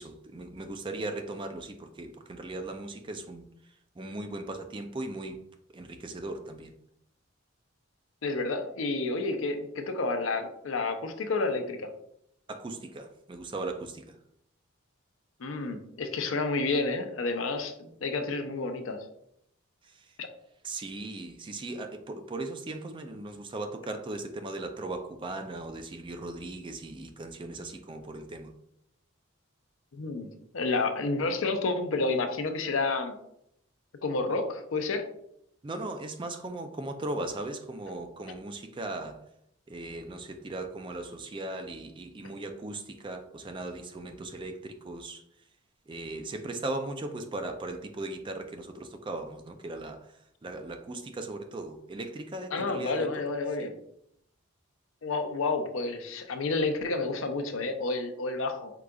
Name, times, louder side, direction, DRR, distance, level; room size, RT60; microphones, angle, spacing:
voice 1, 0.0-3.5 4.0-5.4 5.7-6.8 12.5-14.2 19.8-20.1 20.6-28.5 35.6-39.2 39.7-45.2 45.9-50.2 50.4-53.2 53.6-53.7, right 2 dB, 25° right, 6 dB, 0.4 m, -38 dB
voice 2, 8.2-11.9 15.4-19.0 20.2-20.3 29.9-30.3 30.5-33.2 34.0-35.0 52.5-53.7 55.0-58.7, left 3 dB, 70° left, 6 dB, 0.6 m, -30 dB
4.8 x 3.7 x 2.3 m, 0.74 s
head